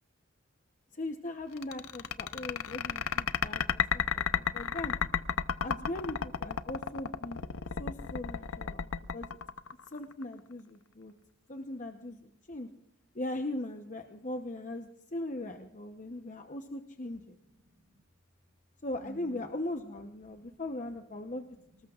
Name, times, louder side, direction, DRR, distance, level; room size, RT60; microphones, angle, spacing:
voice 1, 0.9-4.9 5.6-7.4 7.8-9.3 9.9-11.1 11.5-12.7 13.1-17.4 18.8-21.4, left 1 dB, 35° left, 5 dB, 0.9 m, -39 dB
sound 1, 1.6-10.2, left 7 dB, 80° left, 0.7 m, -32 dB
voice 2, 17.4-18.0 19.0-19.4 20.3-20.6 21.0-21.9, right 2 dB, 60° right, 2 dB, 5.8 m, -56 dB
25.5 x 19.5 x 2.5 m, 0.79 s
head